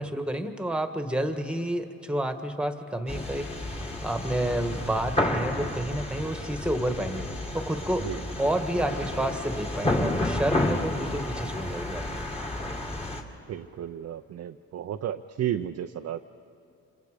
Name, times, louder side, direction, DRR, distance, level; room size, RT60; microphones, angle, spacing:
voice 1, 0.0-8.0 8.4-12.0, right 1 dB, 5° right, 7 dB, 1.7 m, -30 dB
sound 1, 3.1-13.2, left 1 dB, 20° left, 2.5 m, -31 dB
voice 2, 13.5-16.2, right 10 dB, 55° right, 5 dB, 0.7 m, -33 dB
27.5 x 27.0 x 5.1 m, 2.7 s
cardioid pair, 90°, 30 cm